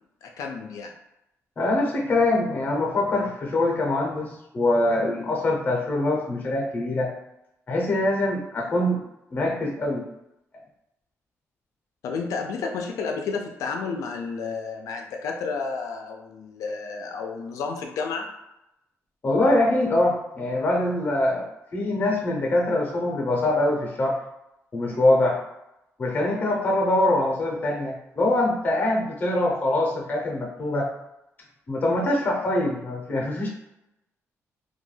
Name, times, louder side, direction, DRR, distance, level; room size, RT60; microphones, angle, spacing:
voice 1, 0.2-0.9 12.0-18.3, left 4 dB, 85° left, 2 dB, 0.3 m, -31 dB
voice 2, 1.6-7.1 7.7-9.0 9.3-10.0 19.2-21.5 21.7-24.2 24.7-25.4 26.0-30.9 31.7-33.5, left 1 dB, 35° left, -1 dB, 0.6 m, -23 dB
2.2 x 2.2 x 3.1 m, 0.87 s
cardioid pair, 135°, 5 cm